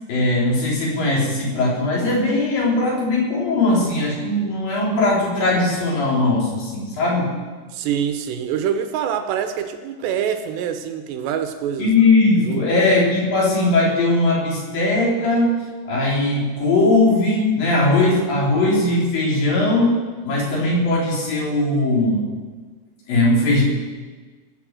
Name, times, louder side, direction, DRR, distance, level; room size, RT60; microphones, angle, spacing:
voice 1, 0.1-7.3 11.8-22.3 23.1-23.6, left 2 dB, 50° left, -3 dB, 5.1 m, -19 dB
voice 2, 7.7-11.9 12.4-12.6, right 8 dB, 75° right, 8 dB, 2.8 m, -25 dB
21.0 x 7.7 x 7.5 m, 1.4 s
omnidirectional pair, 5.5 m